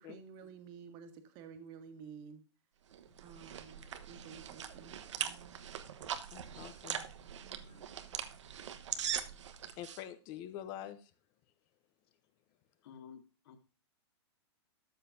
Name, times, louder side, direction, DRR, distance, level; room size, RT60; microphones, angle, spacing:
voice 1, 0.0-2.4 3.2-5.6 6.9-7.9, right 6 dB, 30° right, 1.7 m, -53 dB
sound 1, 2.9-10.0, right 8 dB, 90° right, 1.2 m, -42 dB
voice 2, 6.3-7.1 7.7-7.8 9.8-11.1, left 11 dB, 30° left, 0.7 m, -46 dB
voice 3, 12.8-13.6, left 7 dB, 55° left, 2.3 m, -53 dB
13.0 x 7.3 x 2.7 m
supercardioid pair, 160°, 15 cm